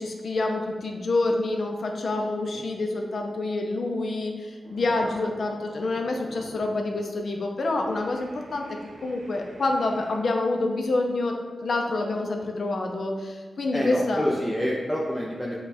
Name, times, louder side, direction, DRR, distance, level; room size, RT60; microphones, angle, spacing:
voice 1, 0.0-14.3, left 2 dB, 65° left, 2 dB, 0.5 m, -27 dB
sound 1, 3.8-4.0 4.4-6.8 7.1-7.4 7.8-10.2, right 1 dB, 65° right, 0.9 m, -48 dB
voice 2, 13.7-15.6, equal, 5° left, -4 dB, 0.5 m, -27 dB
5.3 x 2.3 x 4.2 m, 1.5 s
wide cardioid pair, 90°, 0 cm